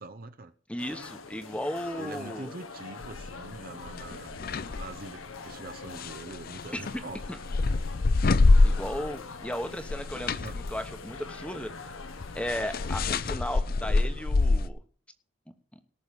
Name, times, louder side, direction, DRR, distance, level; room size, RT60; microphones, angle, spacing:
voice 1, 0.0-0.5 2.0-4.4 4.7-7.2 10.4-10.6, right 2 dB, 45° right, 9 dB, 0.8 m, -43 dB
voice 2, 0.7-2.5 6.7-6.8 8.6-11.7 12.3-14.8, left 1 dB, 5° left, 8 dB, 1.1 m, -35 dB
sound 1, 0.8-13.1, left 4 dB, 85° left, 1.4 m, -44 dB
sound 2, 3.0-3.3 3.8-4.9 5.9-9.2 9.5-14.7, left 3 dB, 45° left, 0.5 m, -26 dB
18.5 x 6.2 x 5.3 m, 0.39 s
head